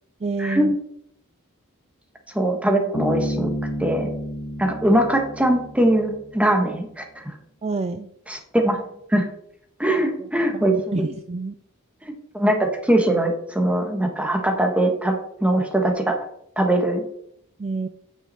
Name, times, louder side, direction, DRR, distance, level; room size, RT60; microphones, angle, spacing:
voice 1, 0.2-0.8 7.6-8.1 10.2-11.5 17.6-17.9, right 3 dB, 30° right, 9 dB, 0.4 m, -28 dB
voice 2, 2.3-3.5 3.8-4.1 4.6-7.0 8.3-8.8 9.1-9.3 9.8-11.0 12.0-15.1 15.4-16.1 16.6-17.0, right 1 dB, 5° right, 4 dB, 1.4 m, -21 dB
Bass guitar, 2.9-6.4, equal, 65° left, 1.5 m, -30 dB
9.1 x 5.9 x 4.4 m, 0.72 s
head